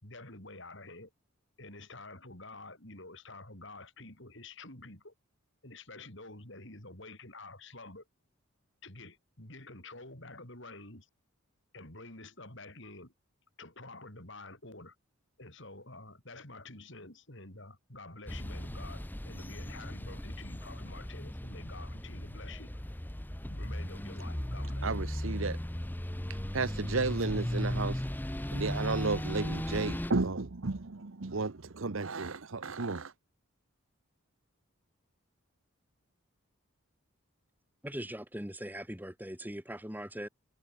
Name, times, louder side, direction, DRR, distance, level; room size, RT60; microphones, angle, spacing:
voice 1, 0.0-1.1 1.6-5.1 5.6-8.0 8.8-11.1 11.7-13.1 13.6-15.0 15.4-22.8 23.5-24.9, left 2 dB, 55° left, 5.6 m, -48 dB
sound 1, 18.3-30.1, equal, 10° left, 0.7 m, -37 dB
voice 2, 24.8-25.6 26.3-28.0 28.5-33.1, right 3 dB, 65° right, 0.9 m, -33 dB
voice 3, 37.8-40.3, right 1 dB, 10° right, 2.9 m, -40 dB
head